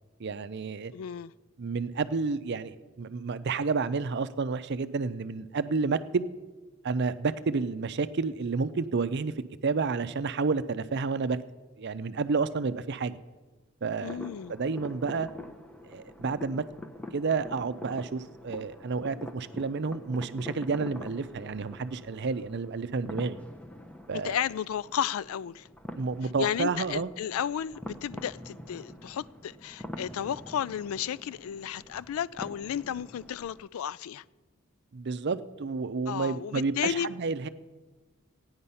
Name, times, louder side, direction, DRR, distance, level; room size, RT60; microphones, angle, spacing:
voice 1, 0.2-0.9 1.6-6.3 6.8-9.3 9.6-11.4 11.8-13.2 13.8-14.2 14.5-15.3 15.9-16.6 17.1-23.4 24.1-24.4 26.0-27.1 34.9-37.5, right 4 dB, 55° right, 0.5 m, -30 dB
voice 2, 0.9-1.3 14.0-14.5 24.1-25.7 26.4-34.2 36.1-37.1, left 9 dB, 80° left, 0.3 m, -33 dB
sound 1, 14.0-33.7, left 1 dB, 5° left, 0.7 m, -45 dB
15.0 x 9.6 x 5.6 m
head